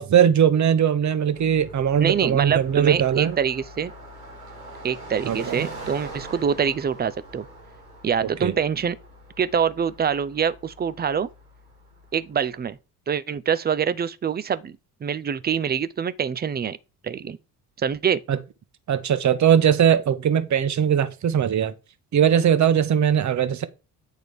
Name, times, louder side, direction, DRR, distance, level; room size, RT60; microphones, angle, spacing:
voice 1, 0.0-3.4 5.2-5.7 8.4-8.5 18.3-18.4 18.9-21.7 22.1-23.7, right 9 dB, 40° right, 1.0 m, -20 dB
Car passing by, 1.3-12.4, right 1 dB, 85° right, 2.2 m, -43 dB
voice 2, 2.0-3.9 4.8-7.5 8.0-9.0 9.4-11.3 12.1-12.8 13.1-16.8 17.0-17.4 17.8-18.2, right 7 dB, 20° right, 0.6 m, -25 dB
9.0 x 3.9 x 4.8 m
figure-of-eight pair, 50°, 46 cm